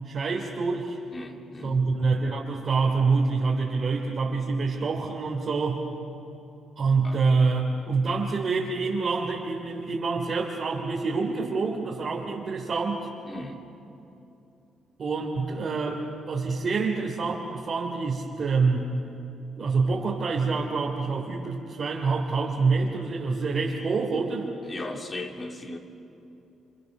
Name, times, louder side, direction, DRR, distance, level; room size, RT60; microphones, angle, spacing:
voice 1, 0.0-1.0 1.6-5.8 6.8-13.1 15.0-18.8 19.5-24.5, right 4 dB, 50° right, -3 dB, 3.0 m, -26 dB
voice 2, 1.1-1.8 7.0-7.2 13.2-13.7 24.6-25.8, left 2 dB, 30° left, 2 dB, 2.9 m, -37 dB
29.0 x 26.0 x 6.6 m, 2.8 s
cardioid pair, 90°, 0 cm